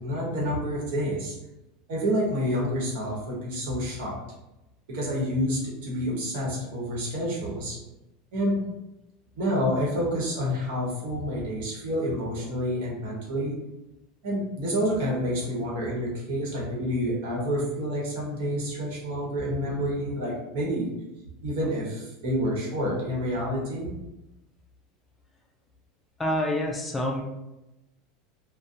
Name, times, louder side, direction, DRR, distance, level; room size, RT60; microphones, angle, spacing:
voice 1, 0.0-1.4 1.9-4.2 4.9-7.8 8.3-8.6 9.4-13.5 14.2-20.9 21.4-23.9, equal, 75° right, -4 dB, 1.0 m, -28 dB
voice 2, 26.2-27.2, left 1 dB, 15° left, 0 dB, 0.3 m, -27 dB
2.6 x 2.1 x 2.5 m, 0.95 s
supercardioid pair, 125°, 0 cm